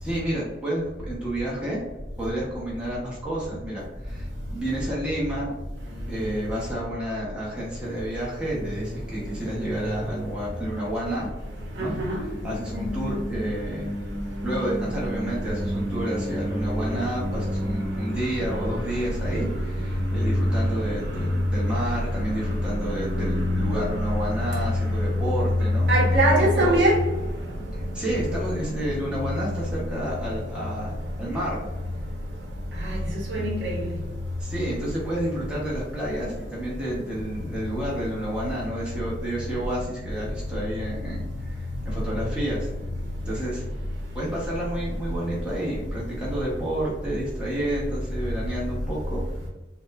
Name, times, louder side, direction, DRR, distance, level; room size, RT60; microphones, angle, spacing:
voice 1, 0.0-1.8 2.2-5.5 6.1-11.3 11.8-11.9 12.4-13.9 14.4-25.9 26.6-26.9 27.7-31.6 33.4-33.5 34.4-42.7 43.2-43.6 44.1-49.2, right 1 dB, 5° right, -7 dB, 0.6 m, -30 dB
voice 2, 11.8-12.2 12.7-13.3 13.8-13.9 14.4-16.6 16.9-21.1 22.7-23.9 25.9-27.0 32.8-33.0 33.3-33.9, equal, 80° right, -2 dB, 0.8 m, -25 dB
2.9 x 2.0 x 2.2 m, 1.1 s
head